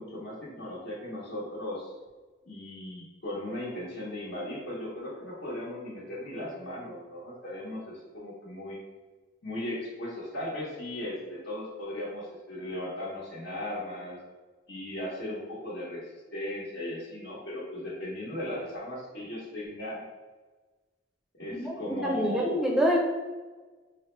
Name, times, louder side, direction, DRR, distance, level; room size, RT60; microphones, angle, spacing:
voice 1, 0.0-1.9 2.5-8.8 9.4-14.2 14.7-16.0 16.3-20.0 21.4-22.6, left 1 dB, 60° left, -9 dB, 1.1 m, -37 dB
voice 2, 21.5-23.0, equal, 5° right, -2 dB, 0.6 m, -26 dB
4.8 x 2.0 x 3.2 m, 1.3 s
head